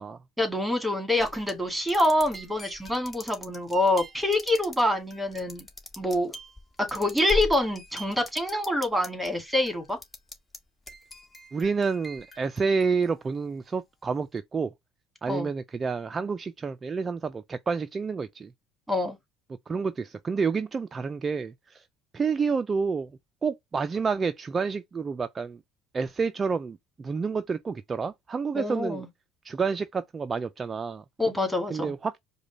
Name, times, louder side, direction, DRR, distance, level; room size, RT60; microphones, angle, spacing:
voice 1, 0.4-5.7 6.0-6.3 6.9-10.0 15.3-15.5 18.9-19.2 28.5-29.1 31.2-31.9, left 1 dB, 5° right, 2.1 m, -26 dB
sound 1, 1.2-9.3 9.6-10.6 10.9-13.3, left 1 dB, 15° left, 1.4 m, -41 dB
voice 2, 11.5-14.7 15.2-18.5 19.7-21.8 22.1-23.1 23.4-25.6 25.9-29.1 29.4-31.0 31.7-32.2, right 5 dB, 30° right, 0.4 m, -29 dB
4.9 x 2.3 x 4.0 m
hypercardioid pair, 75°, 0 cm